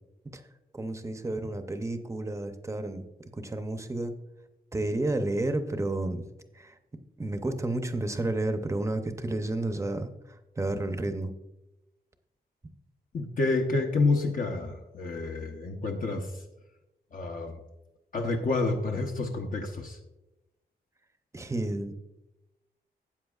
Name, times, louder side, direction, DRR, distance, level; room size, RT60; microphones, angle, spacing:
voice 1, 0.7-3.1 3.3-4.1 4.7-6.2 6.6-6.7 7.2-10.1 10.6-11.3 21.3-21.9, right 2 dB, 15° right, 8 dB, 0.6 m, -31 dB
voice 2, 13.1-16.4 17.1-17.6 18.1-20.0, left 3 dB, 55° left, 2 dB, 0.8 m, -29 dB
13.0 x 8.4 x 2.4 m, 0.95 s
wide cardioid pair, 170°, 17 cm